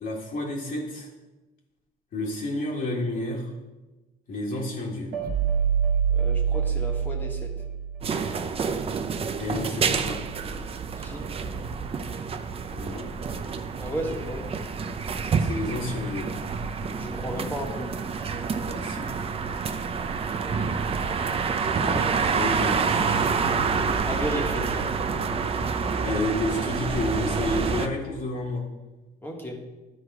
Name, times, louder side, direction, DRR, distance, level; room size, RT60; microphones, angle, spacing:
voice 1, 0.0-1.1 2.1-3.5 4.3-5.2 9.4-10.2 12.8-13.1 15.4-16.3 18.7-19.1 21.8-23.0 25.9-28.6, left 1 dB, 60° left, -4 dB, 1.7 m, -30 dB
sound 1, 5.1-8.3, right 7 dB, 60° right, 1.2 m, -25 dB
voice 2, 6.1-7.5 10.9-11.3 13.8-14.5 16.9-18.0 20.4-20.8 24.0-25.0 29.2-29.7, equal, 10° left, 0 dB, 1.4 m, -34 dB
sound 2, 8.0-27.9, right 5 dB, 35° right, 0.6 m, -28 dB
11.0 x 4.9 x 4.8 m, 1.1 s
cardioid pair, 110°, 17 cm